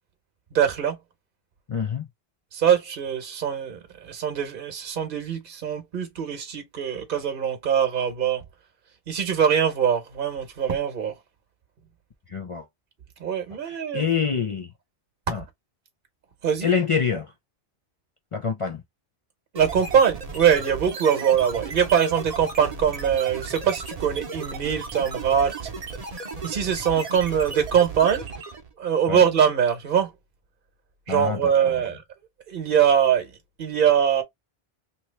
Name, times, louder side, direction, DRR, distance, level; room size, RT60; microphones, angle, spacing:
voice 1, 0.5-1.0 2.5-8.4 9.1-11.1 13.2-14.1 16.4-16.7 19.5-25.5 26.4-28.3 28.8-30.1 31.1-32.0 32.5-33.3 33.6-34.2, right 8 dB, 55° right, 1.1 m, -22 dB
voice 2, 1.7-2.1 12.3-12.7 13.6-14.7 15.3-15.4 16.6-17.3 18.3-18.8 29.1-29.2 31.1-31.8, left 6 dB, 45° left, 0.4 m, -26 dB
sound 1, 19.5-28.7, right 4 dB, 40° right, 0.8 m, -35 dB
3.0 x 2.8 x 3.1 m
omnidirectional pair, 1.1 m